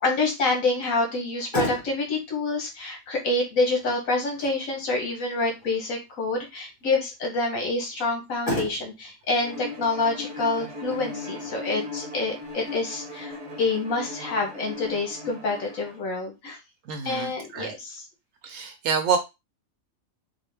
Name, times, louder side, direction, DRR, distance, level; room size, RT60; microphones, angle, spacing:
voice 1, 0.0-16.6 17.0-18.1, left 3 dB, 75° left, 1 dB, 1.4 m, -27 dB
Motor vehicle (road), 1.1-14.1, left 1 dB, 35° left, 1.8 m, -39 dB
Bowed string instrument, 9.4-16.0, left 3 dB, 30° right, 0.7 m, -38 dB
voice 2, 16.9-17.7 18.4-19.2, right 6 dB, 75° right, 6 dB, 1.0 m, -27 dB
3.9 x 2.1 x 3.3 m, 0.24 s
omnidirectional pair, 1.4 m